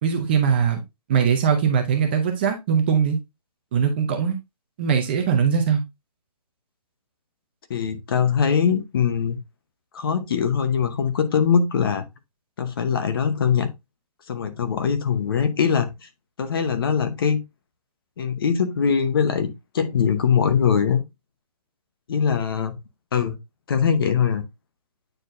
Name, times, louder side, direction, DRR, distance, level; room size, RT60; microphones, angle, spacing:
voice 1, 0.0-0.8 1.1-3.2 3.7-4.4 4.8-5.8, right 7 dB, 15° right, 0.6 m, -21 dB
voice 2, 7.7-9.4 9.9-12.0 12.6-13.7 14.3-16.1 16.4-17.4 18.2-21.0 22.1-22.7 23.1-23.4 23.7-24.5, left 7 dB, 35° left, 0.9 m, -22 dB
9.0 x 4.3 x 2.5 m
hypercardioid pair, 170°, 20 cm